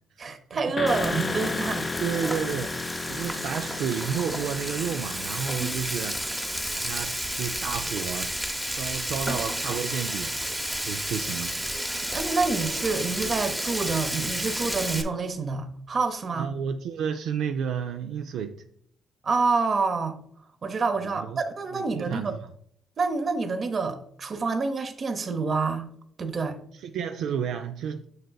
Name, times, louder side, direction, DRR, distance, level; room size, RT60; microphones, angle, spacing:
voice 1, 0.2-1.9 5.6-5.7 12.0-16.5 19.2-20.2 20.6-22.3 23.0-25.9 26.2-26.6, right 4 dB, 45° right, 0.8 m, -27 dB
sound 1, 0.8-8.6, left 4 dB, 35° left, 0.3 m, -35 dB
Frying (food), 0.9-15.0, right 1 dB, 5° right, 0.7 m, -31 dB
voice 2, 1.7-6.2 6.7-8.4 8.7-10.4 10.8-11.5 16.3-18.6 21.0-21.4 21.7-22.4 26.7-28.1, right 7 dB, 80° right, 0.3 m, -31 dB
6.5 x 6.4 x 2.3 m
cardioid pair, 90°, 0 cm